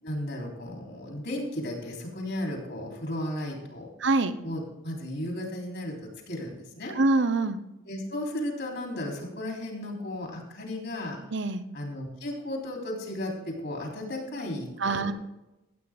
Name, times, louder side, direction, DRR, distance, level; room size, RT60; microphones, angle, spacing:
voice 1, 0.0-3.9 4.4-7.0 7.9-11.2 11.7-15.1, left 1 dB, 55° left, 0 dB, 3.5 m, -35 dB
voice 2, 4.0-4.4 6.9-7.6 11.3-11.6 14.8-15.1, right 3 dB, 55° right, 11 dB, 0.9 m, -24 dB
15.5 x 8.9 x 3.7 m, 0.94 s
head